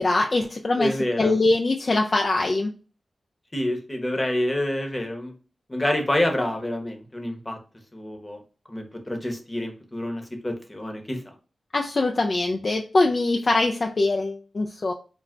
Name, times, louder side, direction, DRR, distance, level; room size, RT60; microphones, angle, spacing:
voice 1, 0.0-0.9 1.2-2.7 11.7-14.9, left 2 dB, 50° left, 2 dB, 0.3 m, -22 dB
voice 2, 0.8-1.3 3.5-5.3 5.7-7.6 7.9-8.4 8.7-11.2, left 1 dB, 25° left, 3 dB, 0.9 m, -27 dB
2.2 x 2.1 x 3.7 m, 0.36 s
cardioid pair, 40°, 0 cm